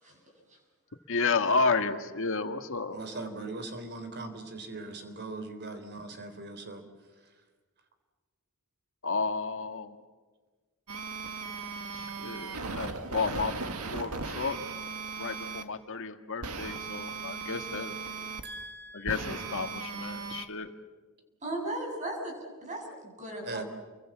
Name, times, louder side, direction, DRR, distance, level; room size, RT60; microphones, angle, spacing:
voice 1, 1.1-3.0 9.0-10.0 11.9-13.5 13.9-14.6 15.2-17.9 18.9-20.7, left 4 dB, 60° left, 7 dB, 1.8 m, -31 dB
voice 2, 2.9-6.8 18.4-19.1 23.4-23.6, right 2 dB, 50° right, 8 dB, 3.6 m, -40 dB
sound 1, 10.9-15.6 16.4-18.4 19.1-20.5, right 4 dB, 80° right, 1.9 m, -37 dB
voice 3, 21.4-22.3 22.6-23.7, right 1 dB, 35° right, 1 dB, 7.7 m, -36 dB
29.5 x 23.5 x 7.5 m, 1.4 s
head